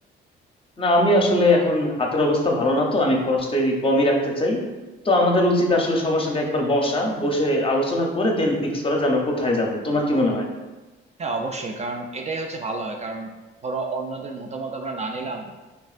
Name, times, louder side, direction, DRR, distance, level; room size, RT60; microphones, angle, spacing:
voice 1, 0.8-4.6 5.0-10.5, left 1 dB, 25° left, 0 dB, 0.7 m, -21 dB
voice 2, 11.2-13.3 13.6-15.5, right 3 dB, 35° right, 3 dB, 0.4 m, -30 dB
4.0 x 3.3 x 2.4 m, 1.2 s
cardioid pair, 90°, 20 cm